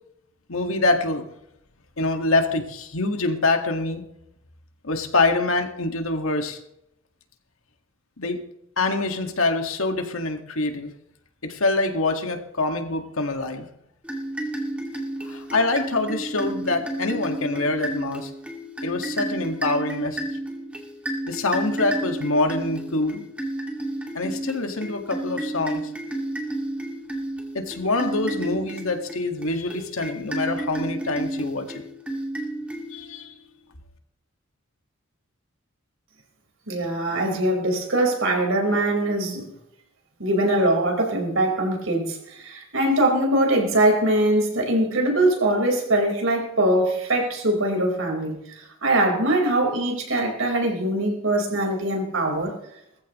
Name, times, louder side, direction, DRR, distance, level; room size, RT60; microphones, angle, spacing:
voice 1, 0.5-1.2 2.0-4.0 4.8-6.6 8.2-8.4 8.8-10.9 11.4-13.7 15.2-18.3 18.8-20.2 21.3-23.2 24.1-25.9 27.5-31.8 32.9-33.3, left 2 dB, 85° left, 5 dB, 1.9 m, -25 dB
sound 1, 14.0-33.2, right 1 dB, 5° right, 2.3 m, -32 dB
voice 2, 36.7-39.4 40.2-52.5, right 1 dB, 75° right, 1 dB, 4.6 m, -22 dB
20.0 x 14.5 x 3.1 m, 0.79 s
head